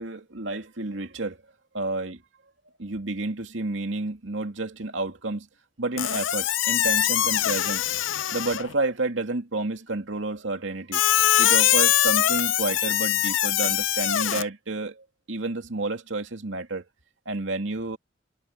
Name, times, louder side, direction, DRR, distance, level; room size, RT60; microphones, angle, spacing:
voice 1, 0.0-1.4 1.7-2.2 2.8-5.5 5.8-7.8 8.3-11.0 11.4-16.8 17.3-18.0, right 2 dB, 80° right, 2.5 m, -30 dB
Squeak, 6.0-8.7 10.9-14.4, left 12 dB, 85° left, 0.6 m, -23 dB
head